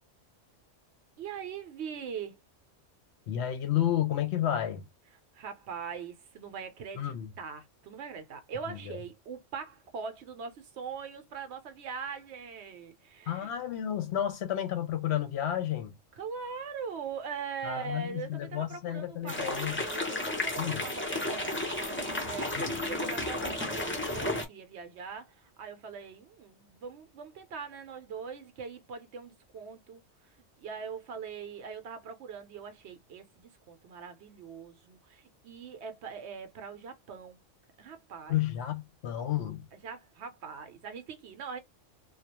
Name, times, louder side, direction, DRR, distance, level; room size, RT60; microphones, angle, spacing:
voice 1, 1.2-2.4 5.3-13.5 16.1-30.0 30.6-37.4 37.8-38.4 39.7-41.6, right 6 dB, 65° right, 0.8 m, -42 dB
voice 2, 3.3-4.8 7.0-7.3 8.7-9.0 13.3-15.9 17.6-19.8 20.6-20.9 22.5-22.8 38.3-39.7, left 11 dB, 65° left, 0.8 m, -31 dB
sound 1, 19.3-24.5, left 1 dB, 15° left, 0.4 m, -33 dB
2.3 x 2.2 x 2.8 m
omnidirectional pair, 1.3 m